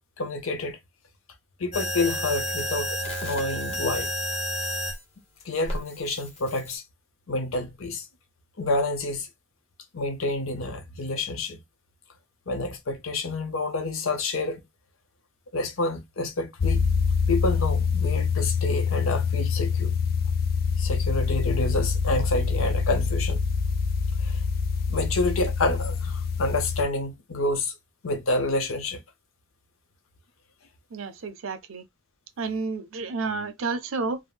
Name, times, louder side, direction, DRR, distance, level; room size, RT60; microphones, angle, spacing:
voice 1, 0.2-0.8 1.6-4.1 5.4-6.8 7.3-8.1 8.6-9.3 9.9-11.6 12.5-14.6 15.5-16.8 17.3-19.9 20.8-23.4 24.2-24.4 24.9-27.7 28.0-29.0, left 2 dB, 85° left, 0.8 m, -28 dB
sound 1, 1.7-5.0 5.7-6.8, equal, 30° left, 1.0 m, -30 dB
sound 2, 16.6-26.8, left 5 dB, 45° left, 0.3 m, -25 dB
voice 2, 30.9-31.8 32.4-34.2, right 4 dB, 75° right, 0.5 m, -30 dB
3.5 x 2.1 x 2.3 m
head